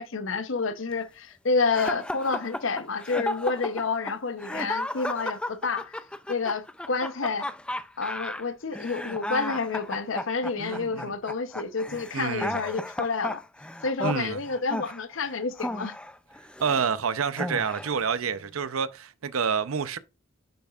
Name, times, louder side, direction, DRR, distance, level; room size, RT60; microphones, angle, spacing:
voice 1, 0.0-5.9 6.3-7.5 8.0-13.4 13.8-16.0, left 4 dB, 70° left, 0.8 m, -29 dB
sound 1, 1.7-16.9 17.3-18.0, left 1 dB, 5° left, 0.3 m, -34 dB
voice 2, 10.6-11.1 12.1-12.6 14.0-14.4 16.6-20.0, right 6 dB, 90° right, 0.6 m, -28 dB
9.7 x 7.0 x 2.4 m
head